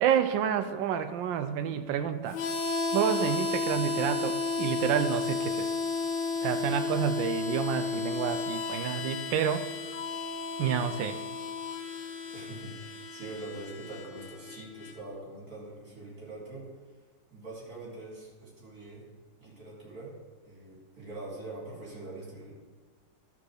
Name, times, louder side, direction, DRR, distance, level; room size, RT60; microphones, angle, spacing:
voice 1, 0.0-2.4 2.9-5.7 6.4-9.7 10.6-11.2, right 8 dB, 90° right, 9 dB, 1.3 m, -29 dB
Harmonica, 2.3-15.0, left 4 dB, 85° left, 1.6 m, -33 dB
voice 2, 12.3-16.7 17.3-19.1 19.4-20.2 20.4-22.5, right 2 dB, 50° right, -4 dB, 3.1 m, -43 dB
12.5 x 4.2 x 6.4 m, 1.5 s
omnidirectional pair, 2.0 m